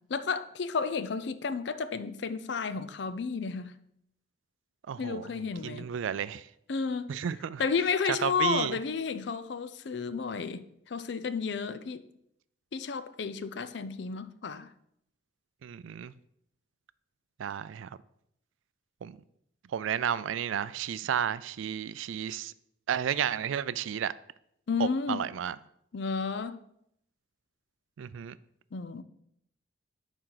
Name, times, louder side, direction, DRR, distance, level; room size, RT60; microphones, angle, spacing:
voice 1, 0.1-3.7 5.0-5.9 6.7-7.1 7.6-12.0 12.7-14.7 24.7-25.2 25.9-26.6 28.7-29.0, left 5 dB, 65° left, 0.5 m, -32 dB
voice 2, 4.9-5.2 5.6-6.5 7.1-7.6 8.2-8.8 15.6-16.1 17.4-18.0 19.0-19.2 19.7-22.5 22.9-24.1 24.8-25.6 28.0-28.4, right 8 dB, 85° right, 0.3 m, -32 dB
11.0 x 4.5 x 4.0 m
head